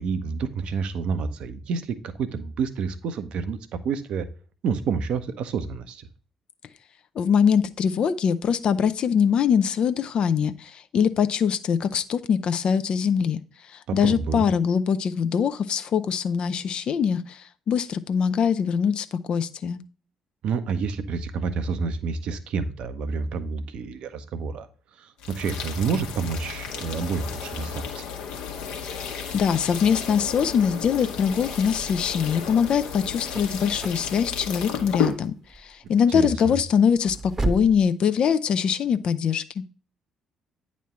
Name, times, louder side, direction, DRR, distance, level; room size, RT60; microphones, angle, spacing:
voice 1, 0.0-4.3 4.6-6.1 13.9-14.5 20.4-24.7 25.0-28.1 36.1-36.5, right 5 dB, 55° right, 10 dB, 0.7 m, -29 dB
voice 2, 7.2-13.4 13.9-19.8 29.3-35.4 35.6-39.6, left 7 dB, 50° left, 11 dB, 0.5 m, -23 dB
sound 1, 25.2-35.2, left 7 dB, 65° left, 1.0 m, -33 dB
sound 2, 32.9-37.8, right 2 dB, 20° right, 0.9 m, -34 dB
9.1 x 3.1 x 5.4 m, 0.39 s
figure-of-eight pair, 45°, 2 cm